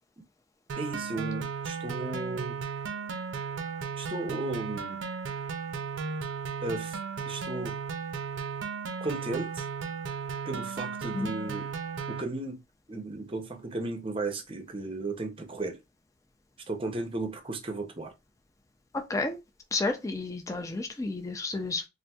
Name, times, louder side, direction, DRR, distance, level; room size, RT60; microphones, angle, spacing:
sound 1, 0.7-12.2, right 5 dB, 75° right, 0.5 m, -35 dB
voice 1, 0.8-2.6 4.0-5.0 6.6-7.0 7.3-7.8 9.0-9.6 10.5-11.7 12.1-12.6 12.9-15.8 16.7-18.1, right 2 dB, 25° right, 0.6 m, -35 dB
voice 2, 18.9-19.4 19.7-21.9, left 3 dB, 15° left, 0.3 m, -31 dB
4.0 x 2.5 x 2.3 m
head